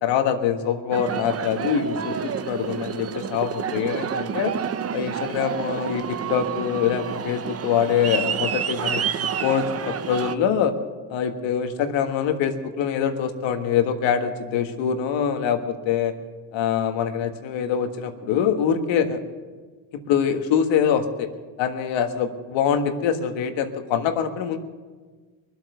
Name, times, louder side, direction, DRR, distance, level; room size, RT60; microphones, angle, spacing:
voice 1, 0.0-4.5 4.9-9.1 9.4-10.8 11.1-16.1 16.5-19.2 19.9-21.3 21.6-24.6, left 8 dB, 70° left, 6 dB, 1.7 m, -24 dB
Aircraft, 0.9-10.3, right 8 dB, 30° right, 0.8 m, -29 dB
23.0 x 8.2 x 6.8 m, 1.4 s
supercardioid pair, 90°, 46 cm